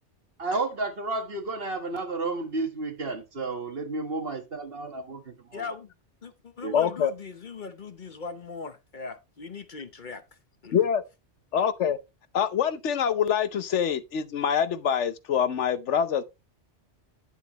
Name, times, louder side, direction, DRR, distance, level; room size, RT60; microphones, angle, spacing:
voice 1, 0.4-5.6 6.6-6.7, right 3 dB, 55° right, 1.7 m, -32 dB
voice 2, 5.5-5.9 6.2-10.2 10.6-10.9, left 5 dB, 45° left, 1.0 m, -39 dB
voice 3, 6.7-7.1 10.7-11.0 11.5-12.0 12.3-16.2, left 8 dB, 80° left, 1.1 m, -25 dB
10.5 x 7.1 x 3.0 m
omnidirectional pair, 1.2 m